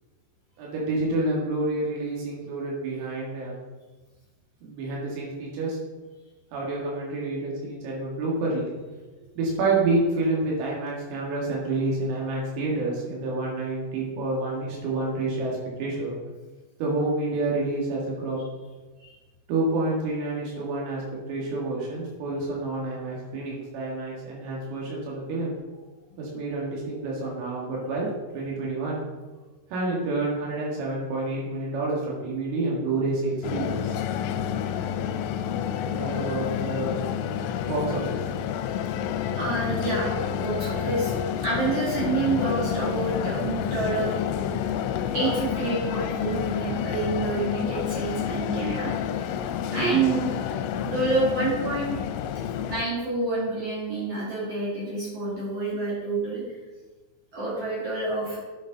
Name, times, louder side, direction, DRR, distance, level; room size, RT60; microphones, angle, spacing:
voice 1, 0.6-3.5 4.6-5.8 6.5-8.7 9.4-16.1 16.8-18.4 19.5-25.6 26.2-28.1 28.3-29.0 29.7-34.0 35.9-37.0 37.7-38.2, right 2 dB, 90° right, -4 dB, 4.5 m, -28 dB
sound 1, 33.4-52.8, left 9 dB, 85° left, 2.7 m, -29 dB
voice 2, 39.4-41.1 41.4-44.2 45.1-48.9 49.7-50.3 50.8-52.0 52.7-56.4 57.3-58.4, right 3 dB, 45° right, -7 dB, 2.3 m, -28 dB
9.9 x 7.2 x 4.0 m, 1.3 s
omnidirectional pair, 5.6 m